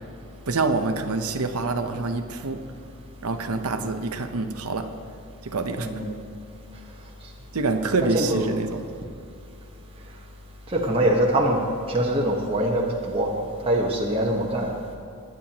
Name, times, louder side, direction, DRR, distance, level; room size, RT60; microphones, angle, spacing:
voice 1, 0.5-2.6 3.2-4.9 5.4-5.9 7.5-8.9, right 3 dB, 90° right, 7 dB, 0.8 m, -26 dB
voice 2, 8.0-8.5 10.7-12.8 13.1-13.3 13.6-14.7, right 1 dB, 25° right, -3 dB, 1.1 m, -23 dB
21.5 x 9.1 x 2.9 m, 2.6 s
head